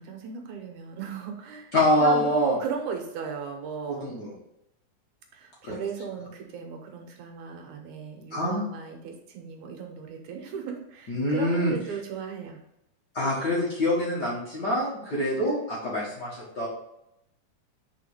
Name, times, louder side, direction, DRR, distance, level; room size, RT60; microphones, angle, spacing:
voice 1, 0.0-1.7 2.0-4.2 5.3-12.6, right 6 dB, 80° right, 3 dB, 2.3 m, -35 dB
voice 2, 1.7-2.5 3.9-4.3 5.6-5.8 8.3-8.6 11.1-11.7 13.1-16.7, left 1 dB, 40° left, -6 dB, 1.7 m, -25 dB
5.0 x 4.6 x 4.9 m, 0.83 s
omnidirectional pair, 3.6 m